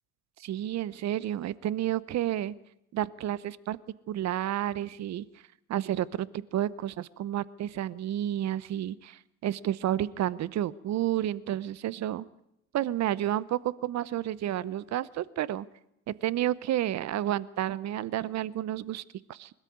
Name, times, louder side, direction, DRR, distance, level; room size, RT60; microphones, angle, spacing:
voice 1, 0.4-2.5 2.9-3.8 4.1-5.2 5.7-12.3 12.7-15.7 16.1-19.0 19.3-19.5, right 12 dB, 50° right, 20 dB, 0.9 m, -31 dB
20.5 x 13.5 x 9.4 m, 0.80 s
hypercardioid pair, 75°, 36 cm